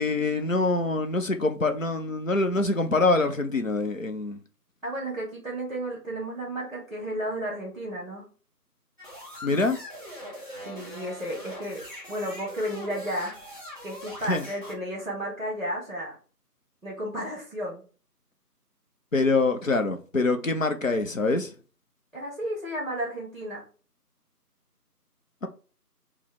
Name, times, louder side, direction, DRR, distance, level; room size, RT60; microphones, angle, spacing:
voice 1, 0.0-4.4 9.4-9.8 14.2-14.4 19.1-21.5 25.4-25.5, left 3 dB, 55° left, 0.5 m, -25 dB
voice 2, 4.8-8.2 10.6-13.3 13.8-16.1 16.8-17.8 22.1-23.6, right 1 dB, ahead, 1.0 m, -33 dB
sound 1, 9.0-14.7, equal, 30° left, 1.9 m, -42 dB
4.4 x 2.0 x 3.2 m
figure-of-eight pair, 175°, 48 cm